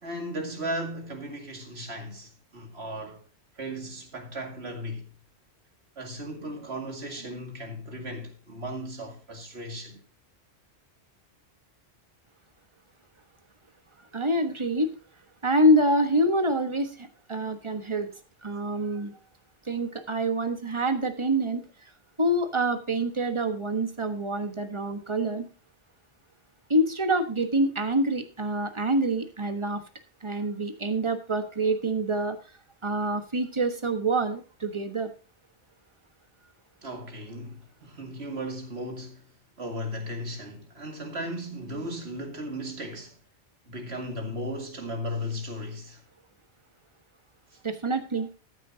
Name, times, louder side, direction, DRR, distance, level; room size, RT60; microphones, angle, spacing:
voice 1, 0.0-3.2 3.6-5.1 6.0-10.0 36.8-43.2 43.7-46.0 47.5-47.6, equal, 65° right, 2.5 m, -36 dB
voice 2, 14.1-14.9 15.4-18.1 18.4-19.1 19.6-21.6 22.2-25.5 26.7-29.8 30.2-32.4 32.8-35.1 47.6-48.3, right 1 dB, 25° right, 1.3 m, -26 dB
14.0 x 9.4 x 2.8 m
omnidirectional pair, 1.2 m